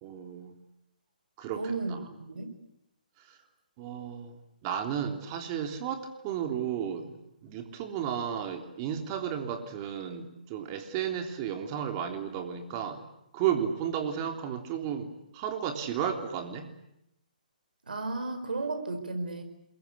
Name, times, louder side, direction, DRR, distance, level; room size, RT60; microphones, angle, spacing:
voice 1, 0.0-0.5 1.4-1.6 1.9-2.0 3.3-3.4 3.8-7.2 7.4-13.0 13.3-16.7, right 8 dB, 30° right, 5 dB, 3.4 m, -33 dB
voice 2, 1.5-2.0 2.3-2.5 17.9-19.4, right 3 dB, 85° right, 8 dB, 5.1 m, -33 dB
29.0 x 22.0 x 8.5 m, 0.81 s
hypercardioid pair, 150°, 5 cm